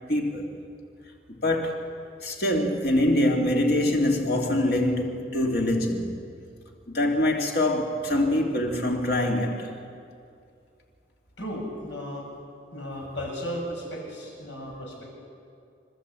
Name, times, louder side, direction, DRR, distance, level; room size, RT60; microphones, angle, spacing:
voice 1, 0.1-0.5 1.3-1.9 2.2-6.2 6.9-9.7, left 1 dB, 60° left, 2.9 m, -24 dB
voice 2, 11.4-12.2 12.7-15.1, equal, 85° left, 7.7 m, -35 dB
30.0 x 13.5 x 8.4 m
head